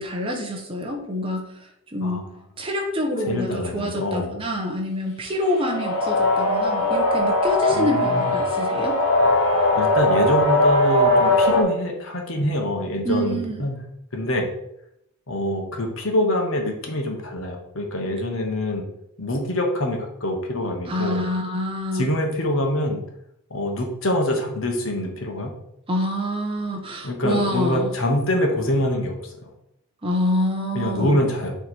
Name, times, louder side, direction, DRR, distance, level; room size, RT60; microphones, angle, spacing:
voice 1, 0.0-2.3 2.6-9.0 13.0-13.7 20.9-22.1 25.9-27.9 30.0-31.2, left 1 dB, 25° right, 1 dB, 1.0 m, -26 dB
voice 2, 3.3-4.3 7.7-8.2 9.8-13.7 14.1-14.5 15.3-18.8 19.2-21.2 21.9-23.0 23.5-25.5 27.0-29.3 30.7-31.5, left 1 dB, 65° left, 2 dB, 1.2 m, -25 dB
sound 1, 5.5-11.6, left 1 dB, 85° left, 1.4 m, -20 dB
6.8 x 3.5 x 4.4 m, 0.80 s
head